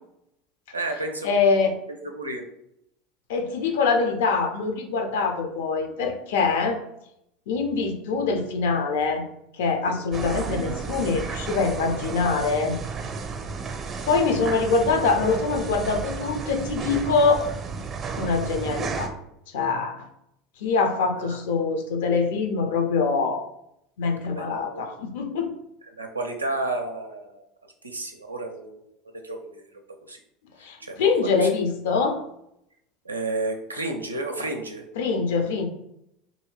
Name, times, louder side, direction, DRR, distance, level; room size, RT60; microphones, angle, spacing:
voice 1, 0.7-1.3 1.9-2.4 9.8-9.9 21.2-21.3 24.4-24.9 26.0-28.9 29.2-29.8 30.1-30.2 30.6-31.5 33.0-34.8, right 2 dB, 90° right, 3 dB, 0.4 m, -32 dB
voice 2, 1.2-1.8 3.3-6.8 7.5-9.2 9.5-12.8 14.1-17.5 18.2-19.1 19.5-20.0 20.6-23.5 24.0-25.5 30.6-32.2 35.0-35.7, left 4 dB, 65° left, 5 dB, 0.5 m, -24 dB
sound 1, 10.1-19.1, right 5 dB, 30° right, 0.6 m, -33 dB
2.7 x 2.6 x 3.1 m, 0.79 s
figure-of-eight pair, 75°, 0 cm